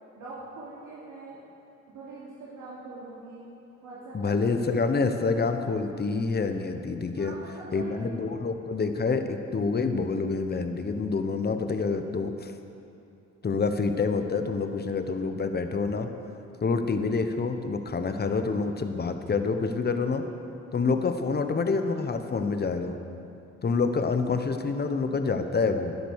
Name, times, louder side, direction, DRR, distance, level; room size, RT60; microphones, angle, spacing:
voice 1, 0.1-1.4 1.9-3.5 3.8-5.4 7.2-8.3 20.7-21.0, right 3 dB, 75° right, -8 dB, 3.1 m, -43 dB
voice 2, 4.1-7.3 7.7-12.5 13.4-16.1 16.6-20.2 20.7-23.0 23.6-26.0, left 4 dB, 35° left, 7 dB, 1.1 m, -27 dB
12.5 x 10.0 x 6.6 m, 2.8 s
cardioid pair, 90°, 30 cm